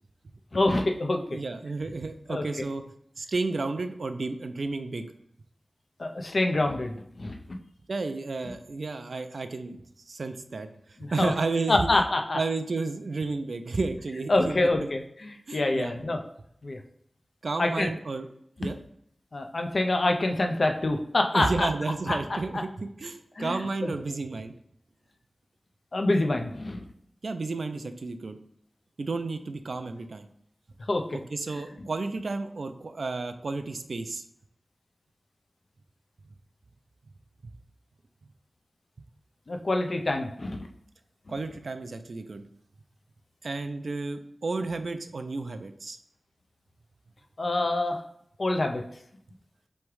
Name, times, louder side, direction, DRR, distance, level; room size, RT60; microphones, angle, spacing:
voice 1, 0.5-1.4 2.3-2.4 6.0-7.6 11.0-11.3 11.7-12.4 14.3-16.2 16.6-16.8 17.6-17.9 19.3-21.7 22.1-22.6 23.4-23.9 25.9-26.8 30.9-31.2 39.5-40.6 47.4-48.0 48.4-48.9, left 2 dB, 60° left, 4 dB, 0.5 m, -26 dB
voice 2, 1.3-2.8 3.2-5.1 7.9-9.8 10.1-10.7 11.1-11.8 12.3-14.9 15.5-16.0 17.4-18.3 18.6-18.8 21.3-24.5 27.2-28.4 29.0-30.3 31.1-34.2 41.3-42.4 43.4-46.0, right 3 dB, 75° right, 8 dB, 0.4 m, -32 dB
3.5 x 3.2 x 4.6 m, 0.71 s
wide cardioid pair, 65°, 0 cm